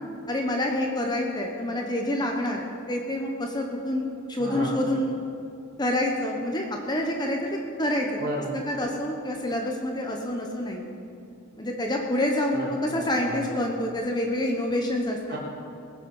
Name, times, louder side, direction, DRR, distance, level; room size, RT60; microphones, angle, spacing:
voice 1, 0.3-5.2 5.8-8.1 8.5-10.9 11.6-15.4, left 1 dB, 20° left, 1 dB, 1.0 m, -27 dB
voice 2, 4.4-4.8 8.2-8.6 12.5-13.5 15.3-15.4, right 1 dB, 45° right, -5 dB, 3.5 m, -33 dB
20.0 x 8.2 x 5.5 m, 2.5 s
head